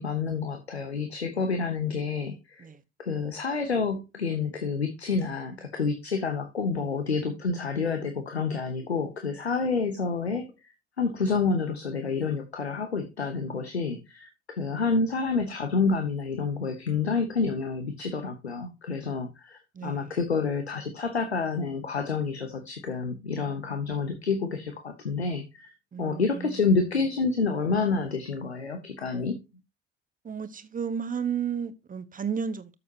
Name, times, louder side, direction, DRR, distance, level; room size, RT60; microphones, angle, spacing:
voice 1, 0.0-2.6 3.0-10.5 11.0-29.4, left 4 dB, 85° left, 1.0 m, -28 dB
voice 2, 19.7-20.2 25.9-26.7 30.2-32.7, right 7 dB, 25° right, 1.2 m, -33 dB
13.0 x 6.8 x 2.8 m
figure-of-eight pair, 55°, 31 cm